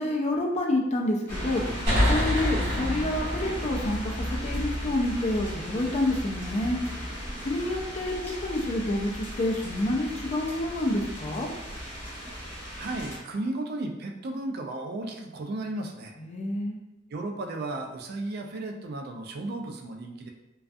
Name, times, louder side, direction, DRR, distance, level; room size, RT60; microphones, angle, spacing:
voice 1, 0.0-1.6 2.1-4.0 4.4-6.8 7.4-11.5 16.2-16.8, left 1 dB, 35° left, 0 dB, 0.4 m, -28 dB
sound 1, 1.3-13.2, equal, 10° left, 0.8 m, -36 dB
sound 2, 1.9-5.3, equal, 35° right, 1.0 m, -28 dB
voice 2, 12.8-16.2 17.1-20.3, right 2 dB, 55° right, 3 dB, 0.3 m, -34 dB
2.3 x 2.3 x 2.5 m, 0.93 s
head